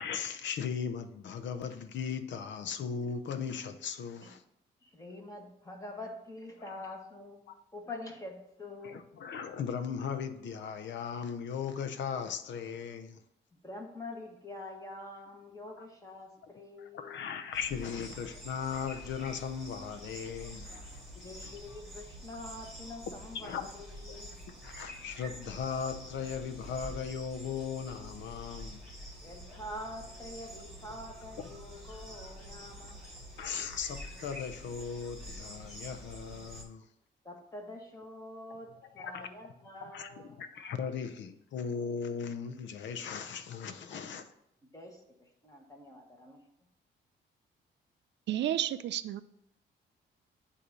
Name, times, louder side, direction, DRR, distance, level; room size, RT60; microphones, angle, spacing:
voice 1, 0.0-4.4 6.6-6.7 7.5-7.6 8.8-13.2 16.8-21.1 21.4-21.5 23.3-23.7 24.6-28.8 31.4-31.5 32.8-32.9 33.4-36.8 39.0-39.3 39.9-40.1 40.4-44.3, left 6 dB, 70° left, 10 dB, 0.7 m, -37 dB
voice 2, 4.8-7.4 7.7-9.0 13.6-17.4 21.1-24.3 29.2-33.0 37.2-40.4 43.9-44.0 44.6-46.5, left 1 dB, 15° left, 1 dB, 1.6 m, -46 dB
sound 1, 17.5-36.6, equal, ahead, 2.2 m, -47 dB
voice 3, 48.3-49.2, right 12 dB, 65° right, 14 dB, 0.4 m, -31 dB
8.2 x 2.8 x 6.1 m, 0.79 s
cardioid pair, 90°, 20 cm